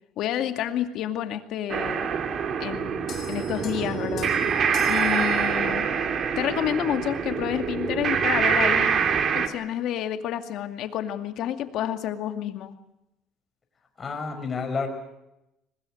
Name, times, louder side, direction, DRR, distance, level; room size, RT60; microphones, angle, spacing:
voice 1, 0.2-2.1 2.6-4.3 4.9-5.9 6.4-9.0 9.3-12.7, left 10 dB, 60° left, 7 dB, 2.3 m, -29 dB
sound 1, 1.7-9.5, right 7 dB, 40° right, 2.5 m, -25 dB
sound 2, 3.1-6.0, left 6 dB, 45° left, 7.3 m, -42 dB
voice 2, 14.0-14.9, left 5 dB, 25° left, 5 dB, 5.8 m, -29 dB
22.5 x 21.0 x 7.9 m, 0.89 s
cardioid pair, 130°, 0 cm